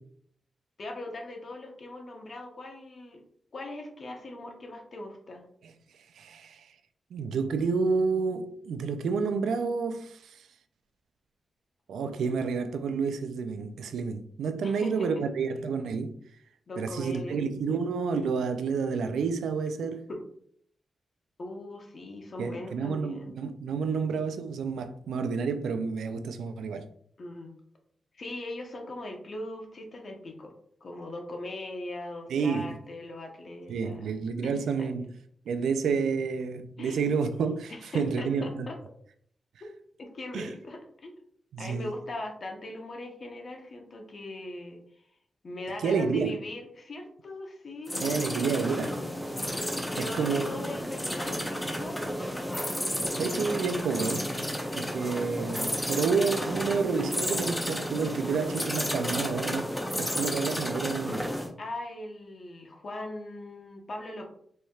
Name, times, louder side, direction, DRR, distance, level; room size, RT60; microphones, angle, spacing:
voice 1, 0.8-3.2 3.5-5.4 14.6-15.2 16.7-17.4 20.1-20.2 21.4-23.3 27.2-27.5 28.1-30.5 30.8-34.1 34.4-34.9 36.8-37.0 37.7-38.8 40.0-41.1 41.6-44.8 45.4-49.2 49.9-52.1 61.6-64.3, left 1 dB, 60° left, 0.9 m, -40 dB
voice 2, 6.1-6.7 7.1-10.5 11.9-16.1 16.8-20.0 22.4-26.9 32.3-32.7 33.7-35.0 35.5-38.7 40.3-40.5 41.5-41.9 45.8-46.3 48.0-48.9 50.0-50.5 53.2-54.3 54.8-61.3, right 5 dB, 90° right, 0.3 m, -29 dB
sound 1, 47.9-61.5, equal, 10° left, 0.9 m, -32 dB
4.1 x 3.3 x 2.3 m
cardioid pair, 55°, 0 cm